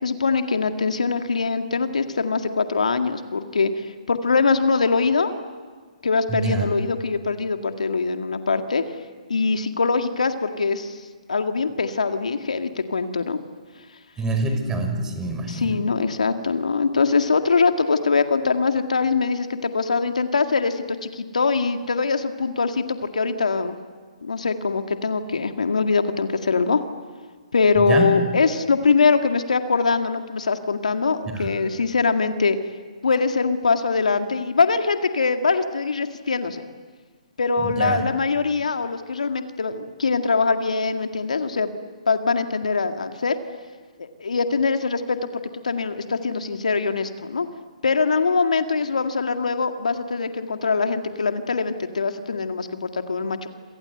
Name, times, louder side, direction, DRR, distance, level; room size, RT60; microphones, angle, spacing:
voice 1, 0.0-5.3 6.0-8.8 9.3-11.0 11.3-13.4 15.5-23.8 24.2-26.8 27.5-32.6 33.0-36.6 37.4-41.7 42.1-43.4 44.0-45.3 45.6-47.5 47.8-53.5, left 4 dB, 75° left, 6 dB, 2.0 m, -22 dB
voice 2, 6.3-6.7 14.2-15.7 27.8-28.1 31.3-31.5 37.6-38.0, right 3 dB, 15° right, 5 dB, 5.2 m, -25 dB
27.5 x 26.5 x 8.0 m, 1.5 s
figure-of-eight pair, 135°, 4 cm